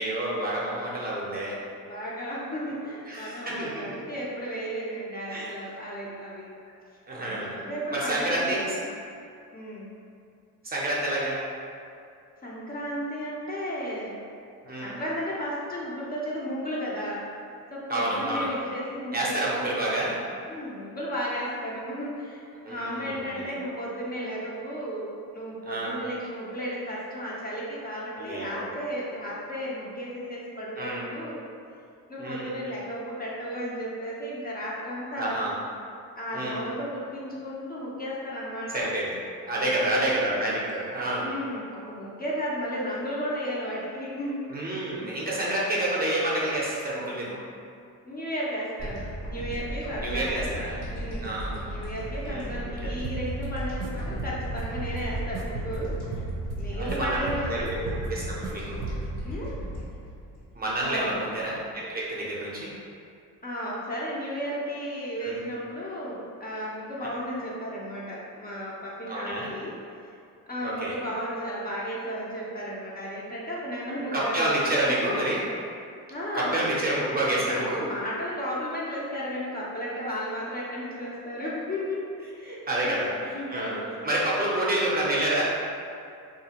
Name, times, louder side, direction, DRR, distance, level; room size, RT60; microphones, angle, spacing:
voice 1, 0.0-1.6 3.1-3.9 5.3-5.5 7.1-7.6 7.9-8.7 10.6-11.4 14.6-15.0 17.9-18.5 19.1-20.2 22.6-23.4 25.7-25.9 28.2-28.6 30.8-31.0 32.2-32.5 35.2-35.5 36.3-36.6 38.7-39.1 39.5-41.3 44.5-47.4 50.0-50.8 51.2-51.7 52.2-53.0 56.8-58.9 60.5-62.7 65.2-65.4 69.1-69.5 70.6-71.0 74.1-75.5 76.3-77.9 82.7-85.4, right 1 dB, 25° right, -5 dB, 0.6 m, -29 dB
voice 2, 1.8-6.5 7.1-8.8 9.5-9.9 12.4-14.2 14.7-17.3 17.7-19.4 20.5-31.5 32.1-35.5 36.2-38.8 39.5-40.2 41.2-44.4 48.0-50.6 50.9-56.2 56.5-57.8 59.2-59.6 60.8-61.2 63.4-69.7 70.5-74.9 76.1-76.6 77.4-82.0 82.3-84.2, equal, 25° left, -6 dB, 0.5 m, -34 dB
sound 1, 48.8-61.3, equal, 85° left, 1.1 m, -35 dB
sound 2, 53.0-53.9 54.2-57.0 57.3-58.5 58.8-59.2, right 4 dB, 85° right, 0.5 m, -36 dB
2.7 x 2.4 x 2.8 m, 2.4 s
supercardioid pair, 85°, 36 cm